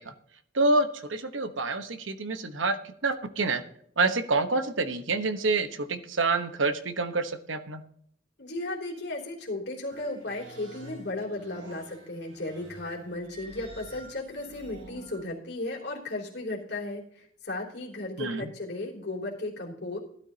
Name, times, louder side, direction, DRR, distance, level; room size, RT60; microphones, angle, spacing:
voice 1, 0.5-3.6 4.0-7.8 18.2-18.5, right 3 dB, 85° right, 9 dB, 1.1 m, -27 dB
voice 2, 8.4-20.0, left 2 dB, 60° left, -1 dB, 3.3 m, -35 dB
sound 1, 9.9-15.2, right 1 dB, 70° right, 3.2 m, -48 dB
17.0 x 12.5 x 2.8 m, 0.64 s
head